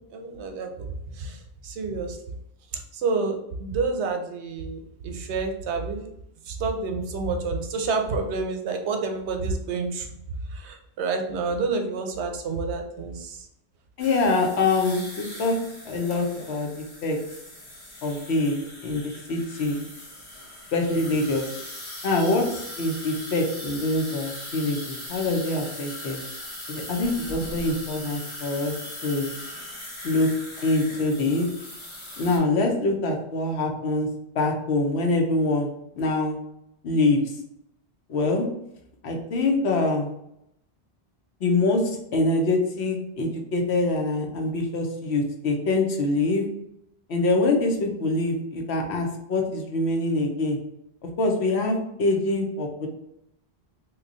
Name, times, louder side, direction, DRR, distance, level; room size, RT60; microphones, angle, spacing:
voice 1, 0.1-0.7 1.2-1.4 1.6-2.2 3.0-6.0 6.5-10.1 10.6-13.4, right 4 dB, 90° right, 4 dB, 0.9 m, -28 dB
voice 2, 14.0-15.6 15.9-17.2 18.0-19.8 20.7-21.4 22.0-22.4 22.8-26.2 26.7-28.7 29.0-29.3 30.0-30.3 30.6-31.5 32.2-34.1 34.4-35.7 36.0-36.4 36.8-37.2 38.1-38.5 39.0-40.1 41.4-41.8 42.1-46.4 47.1-50.6 51.0-52.9, left 2 dB, 80° left, 3 dB, 1.0 m, -24 dB
sound 1, 14.0-32.4, left 1 dB, 30° left, 0.7 m, -39 dB
2.9 x 2.3 x 3.7 m, 0.78 s
omnidirectional pair, 1.1 m